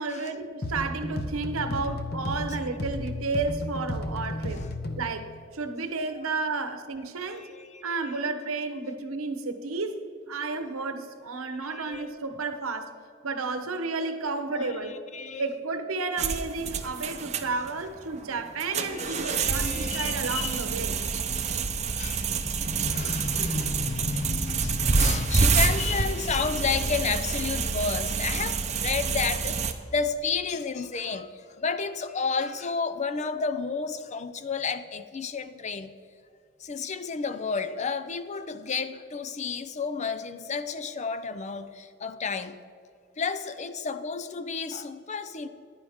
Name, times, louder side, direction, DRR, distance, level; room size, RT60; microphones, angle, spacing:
voice 1, 0.0-4.6 5.0-7.5 7.8-10.0 10.3-12.9 13.2-15.0 15.4-20.9, right 3 dB, 80° right, 0.9 m, -32 dB
sound 1, 0.6-5.1, left 1 dB, 50° left, 1.0 m, -33 dB
voice 2, 7.2-8.2 11.4-12.1 14.5-15.5 16.6-16.8 18.4-20.6 21.0-35.9 36.6-42.6 43.2-45.5, left 5 dB, 35° left, 0.5 m, -32 dB
sound 2, 16.2-29.7, right 5 dB, 30° right, 0.6 m, -28 dB
15.0 x 10.5 x 3.6 m
head